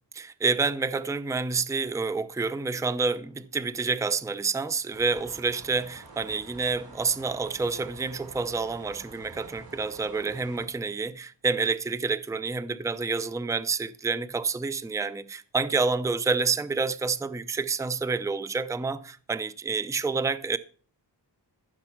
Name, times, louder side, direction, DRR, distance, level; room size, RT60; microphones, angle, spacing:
voice 1, 0.1-20.6, right 4 dB, 10° right, 0.5 m, -28 dB
sound 1, 4.9-10.7, right 3 dB, 55° right, 3.7 m, -48 dB
14.5 x 6.6 x 5.7 m
wide cardioid pair, 155°, 43 cm